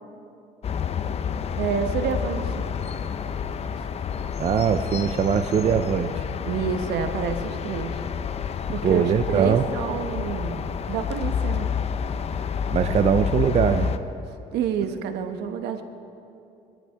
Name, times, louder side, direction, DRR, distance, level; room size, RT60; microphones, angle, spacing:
sound 1, 0.6-14.0, left 7 dB, 40° left, 0.6 m, -29 dB
voice 1, 1.6-2.7 6.5-8.0 8.7-11.7 14.5-15.8, right 7 dB, 75° right, 8 dB, 1.1 m, -28 dB
voice 2, 4.4-6.2 8.8-9.6 12.7-13.9, right 7 dB, 40° right, 10 dB, 0.5 m, -21 dB
22.5 x 13.5 x 3.5 m, 2.7 s
cardioid pair, 110°, 17 cm